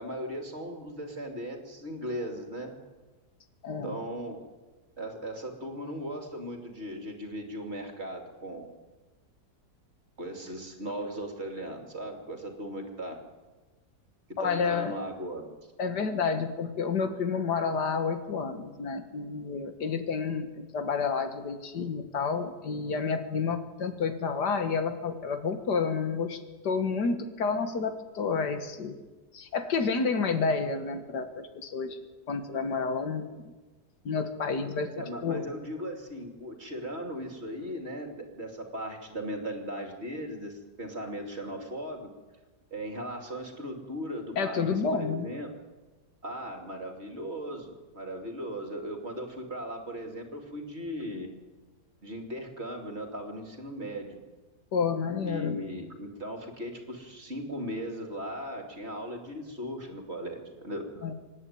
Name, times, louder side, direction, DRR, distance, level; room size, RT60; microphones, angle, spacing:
voice 1, 0.0-2.7 3.8-4.4 5.0-8.7 10.2-13.2 14.4-15.5 35.0-42.1 42.7-45.5 46.2-51.3 52.0-54.2 55.2-61.1, equal, 40° right, 3 dB, 2.9 m, -37 dB
voice 2, 3.6-4.0 14.4-15.0 15.8-29.0 29.3-32.0 32.3-33.3 34.1-35.4 44.4-45.3 54.7-55.7 61.0-61.1, left 5 dB, 80° left, 8 dB, 2.1 m, -30 dB
25.5 x 11.0 x 9.4 m, 1.2 s
omnidirectional pair, 1.8 m